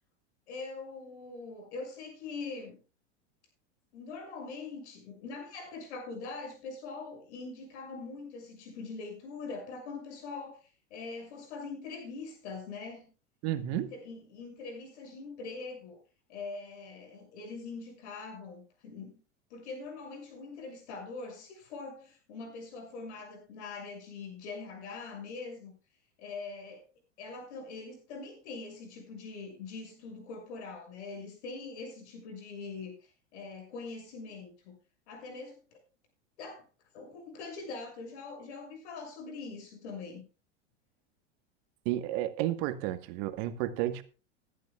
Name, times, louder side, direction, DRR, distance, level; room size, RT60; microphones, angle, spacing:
voice 1, 0.5-2.8 3.9-13.1 13.7-16.0 16.3-19.2 19.5-25.7 26.2-26.8 27.2-32.9 33.3-34.7 35.1-35.8 36.4-36.6 36.9-40.2, left 4 dB, 75° left, 6.5 m, -43 dB
voice 2, 13.4-13.9 41.8-44.0, right 13 dB, 55° right, 1.2 m, -32 dB
20.0 x 11.0 x 2.3 m
hypercardioid pair, 105°, 35 cm